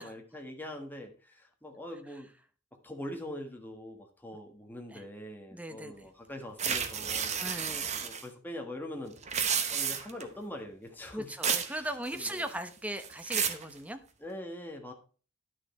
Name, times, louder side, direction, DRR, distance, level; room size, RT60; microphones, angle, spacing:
voice 1, 0.0-2.3 2.8-7.8 8.0-9.4 9.7-11.3 11.8-12.5 14.2-14.9, left 1 dB, 10° left, 2 dB, 1.4 m, -43 dB
voice 2, 5.5-6.1 7.4-8.1 11.1-14.0, right 1 dB, 5° right, 9 dB, 0.9 m, -38 dB
sound 1, 6.6-8.2 9.2-10.2 11.4-11.7 12.1-12.6 13.0-13.6, right 7 dB, 35° right, 1.0 m, -31 dB
11.0 x 6.4 x 4.2 m, 0.38 s
head